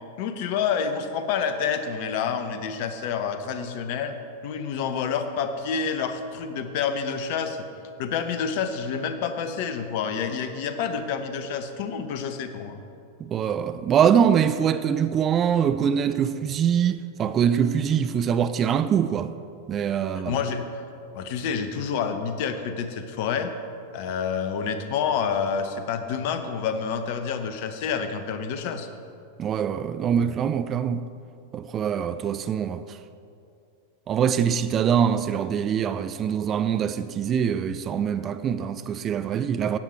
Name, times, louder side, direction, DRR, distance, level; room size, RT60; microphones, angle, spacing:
voice 1, 0.2-4.2 4.4-7.6 8.0-12.8 20.1-20.8 21.1-23.5 23.9-28.9, left 6 dB, 50° left, 0.9 m, -28 dB
voice 2, 13.2-19.3 19.7-20.4 29.4-31.0 31.5-32.8 34.1-39.8, right 8 dB, 30° right, 0.4 m, -23 dB
13.0 x 9.2 x 4.5 m
figure-of-eight pair, 90°, 0 cm